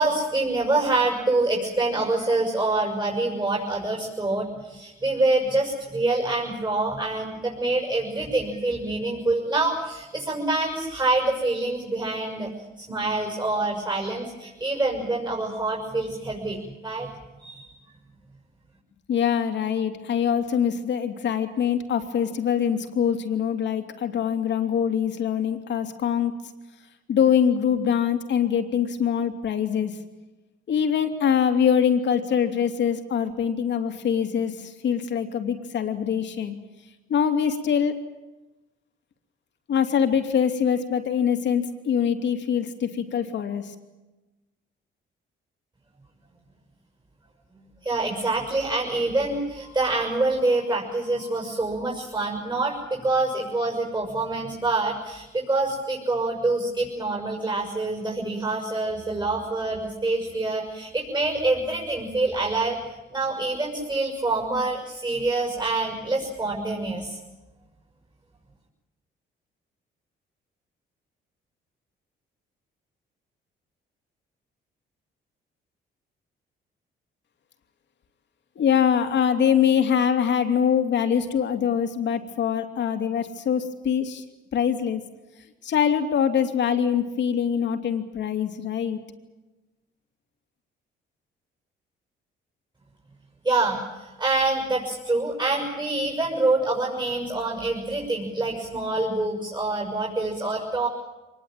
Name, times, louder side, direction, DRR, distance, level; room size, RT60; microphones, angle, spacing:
voice 1, 0.0-12.5 12.8-17.1 17.4-17.7 47.8-62.8 63.1-67.2 93.4-100.9, right 2 dB, 25° right, 0 dB, 6.4 m, -26 dB
voice 2, 19.1-26.3 27.1-30.0 30.7-36.6 37.1-38.0 39.7-43.7 78.6-84.2 84.5-85.0 85.6-89.0, left 8 dB, 65° left, 7 dB, 2.9 m, -23 dB
24.5 x 20.0 x 9.1 m, 1.1 s
cardioid pair, 90°, 20 cm